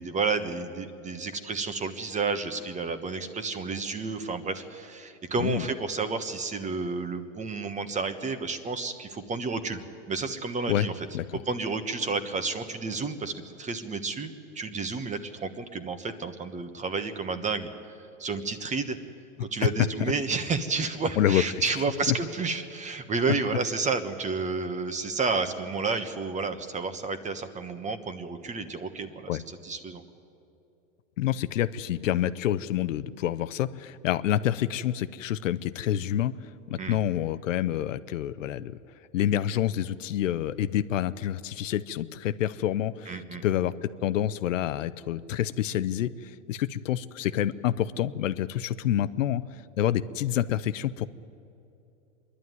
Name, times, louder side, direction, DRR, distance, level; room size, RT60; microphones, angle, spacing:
voice 1, 0.0-9.8 10.1-10.9 11.5-17.7 18.2-19.0 19.4-29.3 29.6-30.0 36.8-37.0 43.1-43.4, right 4 dB, 20° right, 10 dB, 1.3 m, -31 dB
voice 2, 21.2-21.7 22.1-22.2 29.3-29.4 31.2-38.8 39.1-51.1, left 11 dB, 85° left, 14 dB, 0.8 m, -28 dB
25.5 x 11.5 x 9.4 m, 2.7 s
hypercardioid pair, 120°, 38 cm